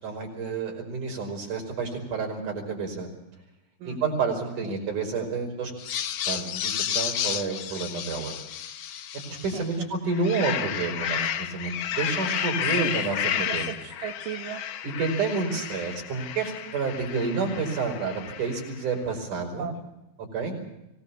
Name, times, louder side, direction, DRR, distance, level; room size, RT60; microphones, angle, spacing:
voice 1, 0.0-3.1 3.8-5.7 6.3-8.3 9.3-13.6 14.8-19.7 20.3-20.5, right 4 dB, 70° right, 1 dB, 6.8 m, -29 dB
sound 1, 5.8-9.7 10.1-18.8, left 9 dB, 85° left, 1.1 m, -32 dB
voice 2, 9.5-9.9 12.2-12.4 12.8-14.6 19.6-19.8, right 8 dB, 90° right, 2 dB, 3.2 m, -37 dB
24.5 x 19.0 x 7.2 m, 0.93 s
omnidirectional pair, 3.7 m